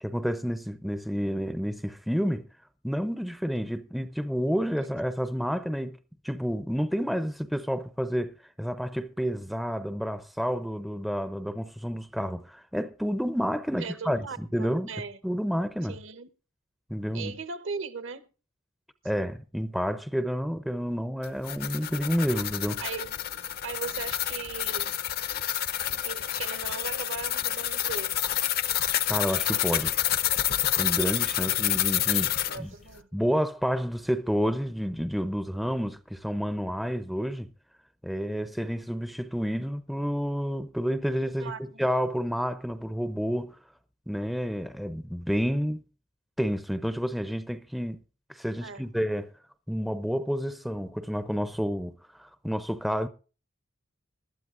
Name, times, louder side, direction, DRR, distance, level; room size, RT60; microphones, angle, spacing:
voice 1, 0.0-2.5 2.8-6.0 6.2-14.9 15.2-16.0 16.9-17.3 19.0-22.8 29.1-29.9 30.8-32.3 32.6-32.7 33.1-37.5 38.0-43.6 44.1-45.8 46.4-48.0 48.3-49.3 49.7-51.9 52.2-53.1, equal, ahead, 0.5 m, -30 dB
voice 2, 13.8-15.2 15.9-16.3 17.1-18.2 22.8-23.1 23.6-24.9 26.0-28.2 32.5-33.1 41.4-41.8 48.6-48.8, right 5 dB, 65° right, 1.0 m, -38 dB
sound 1, 21.2-32.6, left 12 dB, 45° left, 0.6 m, -28 dB
20.0 x 12.5 x 2.5 m
head